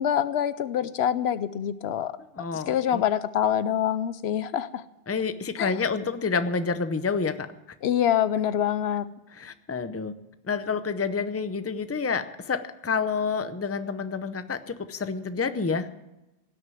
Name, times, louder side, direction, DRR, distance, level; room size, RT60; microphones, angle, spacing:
voice 1, 0.0-2.1 2.5-4.8 5.6-5.7 7.8-9.1, left 9 dB, 80° left, 15 dB, 0.9 m, -25 dB
voice 2, 2.3-3.0 5.1-7.5 9.4-10.1 10.5-15.9, left 5 dB, 15° left, 11 dB, 0.6 m, -28 dB
17.0 x 6.6 x 9.1 m, 0.95 s
omnidirectional pair, 1.1 m